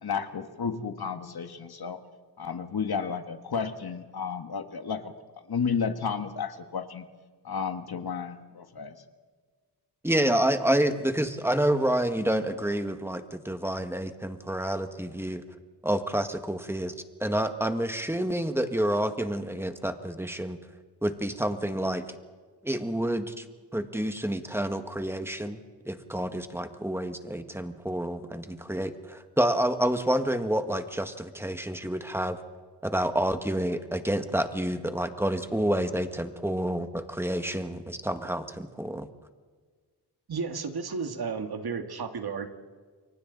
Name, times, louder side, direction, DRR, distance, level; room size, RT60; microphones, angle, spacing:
voice 1, 0.0-2.0 2.4-5.1 5.5-7.0 7.4-9.0, left 6 dB, 65° left, 7 dB, 1.7 m, -32 dB
voice 2, 10.0-15.4 15.8-16.9 17.2-20.6 21.0-22.0 22.6-23.4 23.7-25.6 25.9-32.4 32.8-39.1, right 1 dB, 5° right, 7 dB, 1.7 m, -28 dB
voice 3, 40.3-42.5, right 5 dB, 65° right, 6 dB, 2.0 m, -33 dB
29.5 x 24.0 x 4.1 m, 1.5 s
cardioid pair, 75°, 41 cm